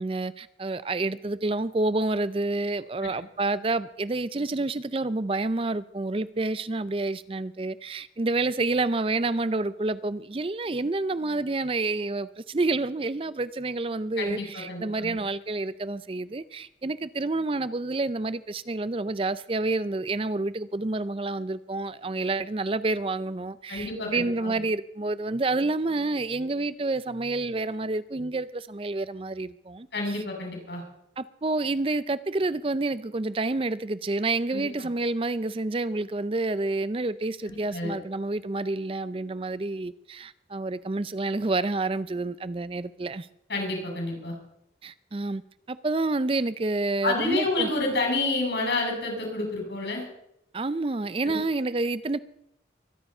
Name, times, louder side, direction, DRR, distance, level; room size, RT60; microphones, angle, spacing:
voice 1, 0.0-30.2 31.2-43.3 44.8-45.4 45.7-47.7 50.5-52.2, right 2 dB, 30° right, 0.5 m, -29 dB
voice 2, 14.2-15.2 23.7-24.6 29.9-30.8 34.5-34.7 37.5-37.9 43.5-44.3 47.0-50.1 51.2-51.4, left 2 dB, 75° left, 7.0 m, -29 dB
23.0 x 9.6 x 5.5 m
head